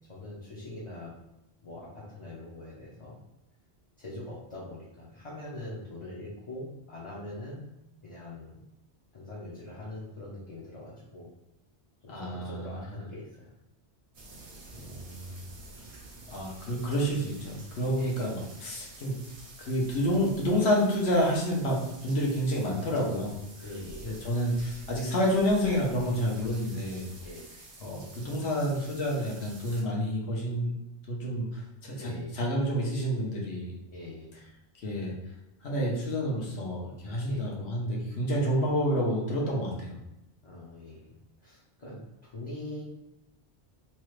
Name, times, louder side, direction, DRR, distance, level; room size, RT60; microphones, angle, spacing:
voice 1, 0.1-1.1 1.6-3.2 4.0-7.7 8.0-8.6 9.1-11.3 12.0-13.5 18.0-18.3 23.6-24.1 27.2-27.4 32.0-32.3 33.9-34.4 37.2-37.5 40.4-41.1 41.4-42.8, left 1 dB, 35° left, -7 dB, 0.6 m, -43 dB
voice 2, 12.1-12.7 14.7-15.2 16.3-19.1 19.6-23.3 24.0-27.1 27.8-30.7 31.1-33.8 34.8-35.1 35.6-39.9, equal, 70° left, -3 dB, 1.1 m, -29 dB
sound 1, 14.1-29.8, right 2 dB, 55° right, 0.8 m, -49 dB
3.0 x 2.4 x 3.1 m, 0.87 s
omnidirectional pair, 1.1 m